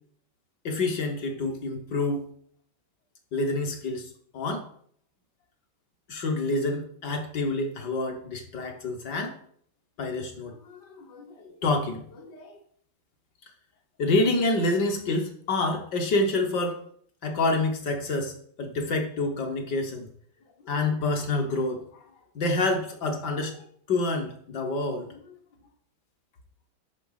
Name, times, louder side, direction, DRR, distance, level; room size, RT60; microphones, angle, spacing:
voice 1, 0.6-2.2 3.3-4.1 4.3-4.6 6.1-9.4 10.0-12.6 14.0-16.8 17.2-18.3 18.6-20.1 20.6-21.8 22.3-25.4, left 2 dB, 60° left, 3 dB, 1.4 m, -28 dB
9.9 x 3.5 x 5.6 m, 0.62 s
omnidirectional pair, 2.3 m